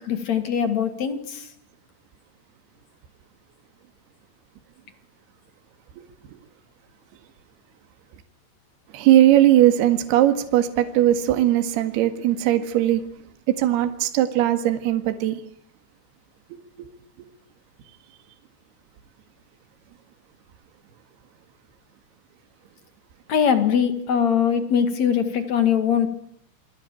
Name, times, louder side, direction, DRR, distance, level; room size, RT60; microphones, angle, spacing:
voice 1, 0.0-1.5 23.3-26.1, left 8 dB, 50° left, 2.2 m, -22 dB
voice 2, 8.9-13.0 13.6-15.4 16.8-16.9, right 12 dB, 60° right, 3.4 m, -19 dB
28.0 x 22.5 x 9.2 m
omnidirectional pair, 5.9 m